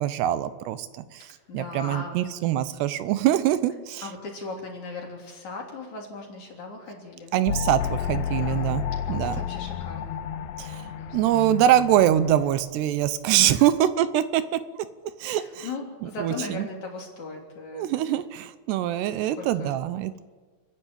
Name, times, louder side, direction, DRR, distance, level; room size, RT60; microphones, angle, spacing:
voice 1, 0.0-4.0 7.3-8.8 9.1-9.4 10.6-10.9 11.1-14.9 15.2-15.7 16.2-16.7 17.7-20.2, right 12 dB, 85° right, 13 dB, 3.0 m, -24 dB
voice 2, 1.5-2.1 4.0-7.4 8.3-8.8 9.1-10.2 10.8-11.2 13.4-13.6 15.2-17.9 19.4-19.8, left 3 dB, 45° left, 0 dB, 4.3 m, -38 dB
sound 1, 7.5-12.5, left 8 dB, 90° left, 1.7 m, -31 dB
29.5 x 10.5 x 8.9 m, 1.4 s
omnidirectional pair, 4.7 m